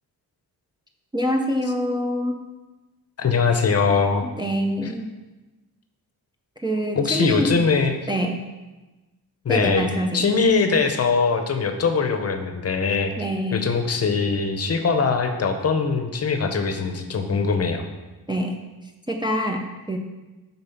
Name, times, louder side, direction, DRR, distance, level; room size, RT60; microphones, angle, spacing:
voice 1, 1.1-2.4 4.2-5.1 6.6-7.6 8.1-8.5 9.5-10.3 13.2-13.7 18.3-18.6 18.8-20.0, equal, 15° right, 1 dB, 0.4 m, -25 dB
voice 2, 3.2-4.2 4.8-4.9 6.9-7.9 9.4-9.9 10.1-13.1 13.5-17.8, left 5 dB, 40° left, 7 dB, 0.7 m, -22 dB
6.7 x 4.1 x 5.7 m, 1.1 s
wide cardioid pair, 145°, 37 cm